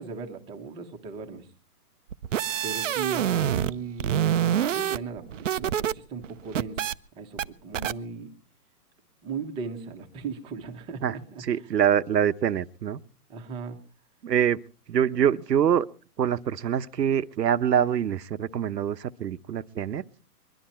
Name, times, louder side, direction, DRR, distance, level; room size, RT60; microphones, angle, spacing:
voice 1, 0.0-1.5 2.6-4.5 4.7-8.3 9.2-11.4 13.3-13.8, right 5 dB, 10° right, 1.1 m, -37 dB
sound 1, 2.1-3.7 4.0-5.9 6.2-6.9 7.4-7.5 7.7-7.9, right 10 dB, 50° right, 0.7 m, -26 dB
voice 2, 11.4-13.0 14.2-14.6 14.9-15.9 16.2-20.0, right 9 dB, 85° right, 1.0 m, -25 dB
22.5 x 12.0 x 4.3 m
hypercardioid pair, 155°, 48 cm